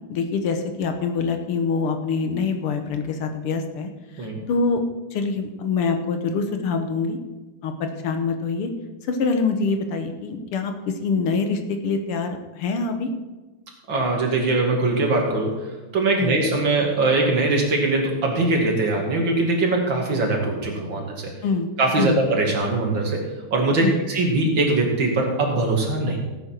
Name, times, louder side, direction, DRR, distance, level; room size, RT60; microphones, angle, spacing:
voice 1, 0.1-3.9 4.2-4.8 5.1-7.2 7.6-8.7 9.1-13.1 16.2-16.4 21.4-21.7 22.0-22.2 23.8-24.0, left 4 dB, 85° left, 6 dB, 2.1 m, -25 dB
voice 2, 13.9-21.3 21.8-23.2 23.5-26.2, right 2 dB, 60° right, 0 dB, 2.8 m, -22 dB
17.0 x 8.9 x 4.5 m, 1.2 s
omnidirectional pair, 2.4 m